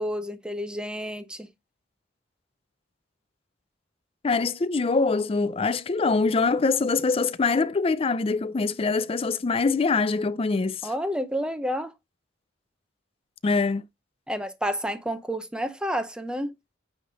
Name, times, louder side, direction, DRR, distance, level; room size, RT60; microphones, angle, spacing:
voice 1, 0.0-1.5 10.8-11.9 14.3-16.5, equal, 5° right, 0.7 m, -30 dB
voice 2, 4.2-10.9 13.4-13.8, left 4 dB, 30° left, 0.4 m, -24 dB
9.0 x 3.4 x 3.9 m
head